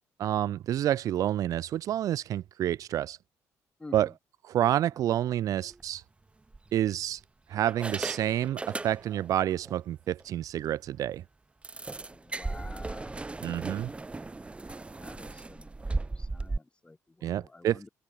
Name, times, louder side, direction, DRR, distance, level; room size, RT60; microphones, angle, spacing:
voice 1, 0.2-3.2 3.9-4.1 4.5-6.0 6.7-7.2 7.5-11.2 13.4-13.9 17.2-17.9, right 12 dB, 65° right, 2.4 m, -28 dB
voice 2, 3.8-4.1 12.1-13.3 15.0-17.9, left 2 dB, 15° left, 7.8 m, -49 dB
sound 1, 5.6-5.8 6.5-7.2 7.7-9.3 9.6-9.8 10.2-10.3 10.6-10.7 11.6-16.6, right 3 dB, 20° right, 4.3 m, -37 dB
open air
cardioid pair, 100°, 6 cm